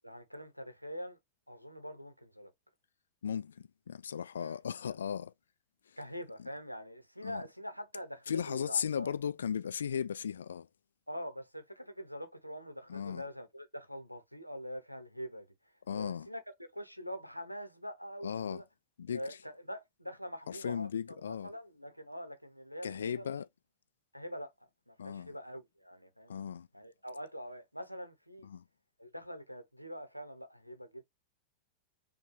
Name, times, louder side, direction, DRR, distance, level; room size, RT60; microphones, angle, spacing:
voice 1, 0.0-1.2 1.5-2.5 4.4-4.6 6.0-9.1 11.1-15.5 15.9-18.6 19.1-20.9 21.3-23.3 24.1-24.5 24.9-26.4 26.7-28.5 29.0-31.0, equal, 90° left, 0.8 m, -44 dB
voice 2, 3.2-5.3 6.4-6.5 7.2-7.4 8.3-10.7 12.9-13.2 15.9-16.3 18.2-18.6 19.0-19.4 20.5-21.5 22.8-23.5 25.0-25.3 26.3-26.7 28.4-28.6, left 7 dB, 70° left, 0.3 m, -36 dB
5.3 x 2.3 x 3.0 m
figure-of-eight pair, 90°, 0 cm